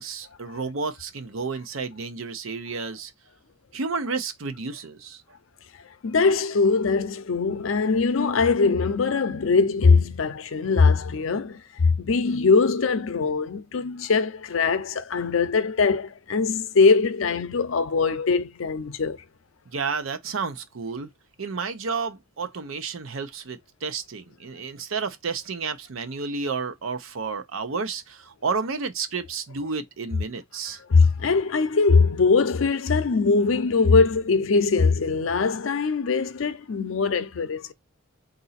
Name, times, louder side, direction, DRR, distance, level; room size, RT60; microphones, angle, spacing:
voice 1, 0.0-3.1 3.7-5.2 19.7-21.1 21.4-30.8, right 4 dB, 90° right, 0.7 m, -31 dB
voice 2, 6.0-19.2 30.9-37.7, left 4 dB, 75° left, 0.6 m, -21 dB
3.9 x 2.6 x 4.1 m
head